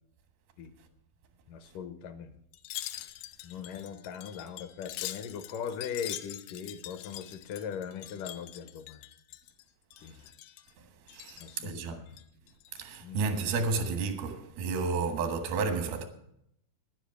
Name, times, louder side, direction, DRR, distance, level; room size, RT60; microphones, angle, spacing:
voice 1, 1.5-2.3 3.4-9.0 10.0-10.2 11.4-12.2 13.0-13.5, left 7 dB, 75° left, 2.2 m, -40 dB
Wind chime, 2.5-9.6 9.9-10.7 11.1-11.6 12.1-13.0 13.4-13.5, left 15 dB, 90° left, 2.5 m, -44 dB
voice 2, 11.1-12.0 12.7-16.1, right 4 dB, 90° right, 3.3 m, -31 dB
10.5 x 10.5 x 6.8 m
omnidirectional pair, 4.2 m